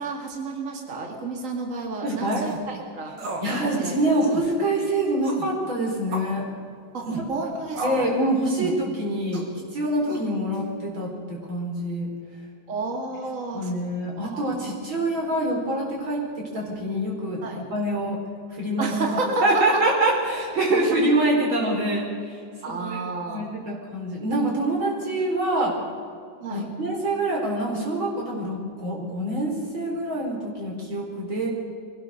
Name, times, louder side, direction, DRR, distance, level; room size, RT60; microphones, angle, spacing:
voice 1, 0.0-3.1 3.7-3.9 6.9-8.1 12.7-13.8 14.2-14.6 17.4-17.6 18.8-19.8 22.6-23.4 26.4-26.7, right 3 dB, 40° right, 2 dB, 2.6 m, -30 dB
voice 2, 2.0-2.4 3.4-6.5 7.1-7.2 7.8-9.5 9.7-12.1 13.5-18.2 18.6-18.9 19.4-22.4 22.8-23.0 23.3-25.7 26.5-31.5, right 1 dB, 90° right, -1 dB, 5.5 m, -25 dB
sound 1, 2.3-2.6 3.2-3.5 3.8-3.9 4.2-4.5 5.2-5.5 6.1-6.4 7.0-7.3 7.7-8.1 8.6-8.8 9.3-9.5 10.1-10.6, right 2 dB, 70° right, 3.0 m, -33 dB
23.0 x 17.0 x 6.6 m, 2.3 s
omnidirectional pair, 2.1 m